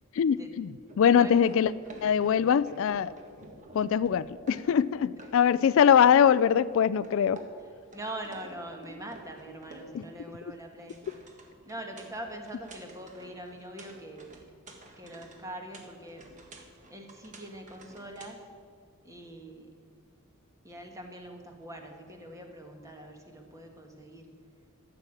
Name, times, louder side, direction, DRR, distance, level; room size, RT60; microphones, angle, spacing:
voice 1, 0.1-1.7 2.0-3.1 3.7-7.4 9.9-10.0, left 8 dB, 60° left, 17 dB, 0.3 m, -23 dB
sound 1, 0.9-4.9 5.2-6.7 7.0-10.3 10.6-18.3, right 1 dB, 35° right, 1.6 m, -51 dB
voice 2, 1.1-1.5 5.2-5.3 7.9-11.0 11.6-14.4 15.0-16.3 16.9-18.4 19.0-19.8 20.6-24.3, right 1 dB, 15° right, 3 dB, 1.5 m, -43 dB
13.5 x 7.1 x 8.9 m, 2.2 s
head